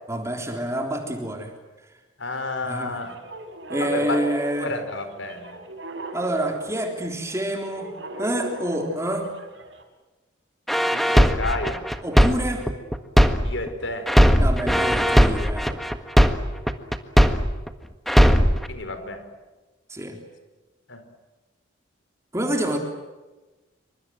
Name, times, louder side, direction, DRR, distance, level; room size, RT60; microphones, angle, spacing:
voice 1, 0.1-1.5 2.6-3.1 3.7-4.7 6.1-9.3 12.0-12.7 14.4-15.8 19.9-20.2 22.3-22.8, right 1 dB, 15° right, 3 dB, 3.7 m, -27 dB
voice 2, 2.2-3.2 3.8-4.2 4.6-5.6 10.9-11.8 13.4-14.1 18.7-19.2 20.9-21.0, left 2 dB, 75° left, 9 dB, 4.6 m, -30 dB
sound 1, 3.0-9.8, equal, 70° right, 4.7 m, -37 dB
sound 2, 10.7-13.7 14.1-17.7 18.1-18.7, equal, ahead, 1.6 m, -18 dB
28.0 x 25.5 x 7.8 m, 1.2 s
head